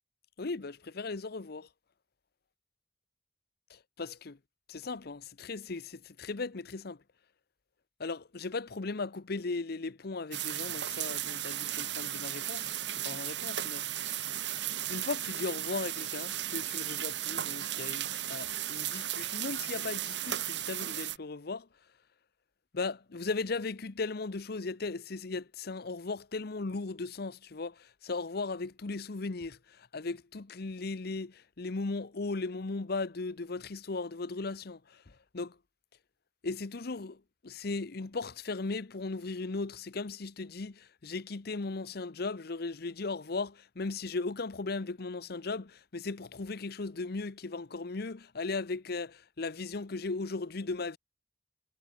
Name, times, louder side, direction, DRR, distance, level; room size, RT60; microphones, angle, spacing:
voice 1, 0.4-1.7 3.7-4.4 4.7-7.0 8.0-12.7 13.0-14.2 14.9-21.7 22.7-35.6 36.4-51.0, left 3 dB, 60° left, 0.8 m, -37 dB
sound 1, 10.3-21.2, right 12 dB, 70° right, 2.6 m, -35 dB
head